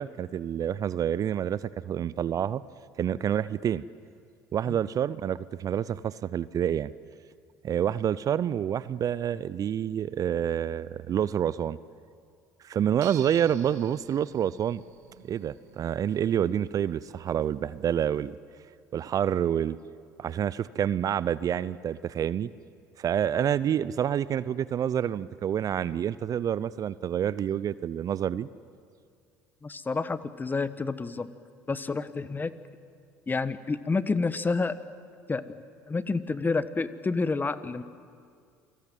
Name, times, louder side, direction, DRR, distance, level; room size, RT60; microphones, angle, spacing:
voice 1, 0.0-2.6 3.0-3.8 4.5-6.9 7.6-11.8 12.6-14.8 15.2-18.3 18.9-19.8 20.2-22.5 23.0-28.5, right 9 dB, 40° right, 18 dB, 0.6 m, -28 dB
sound 1, 13.0-18.4, right 11 dB, 75° right, 1.6 m, -52 dB
voice 2, 29.6-31.3 31.7-32.5 33.3-34.8 35.3-35.4 35.9-37.8, left 4 dB, 20° left, 15 dB, 1.2 m, -29 dB
28.0 x 19.5 x 9.3 m, 2.2 s
hypercardioid pair, 65°, 9 cm